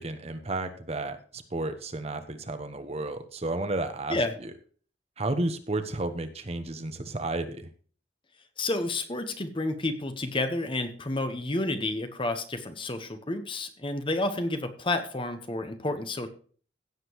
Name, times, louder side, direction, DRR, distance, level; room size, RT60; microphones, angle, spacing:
voice 1, 0.0-4.2 4.4-4.5 5.2-7.7, right 2 dB, 35° right, 9 dB, 1.0 m, -32 dB
voice 2, 8.6-16.3, left 2 dB, 30° left, 8 dB, 1.1 m, -30 dB
16.0 x 7.6 x 3.1 m, 0.42 s
head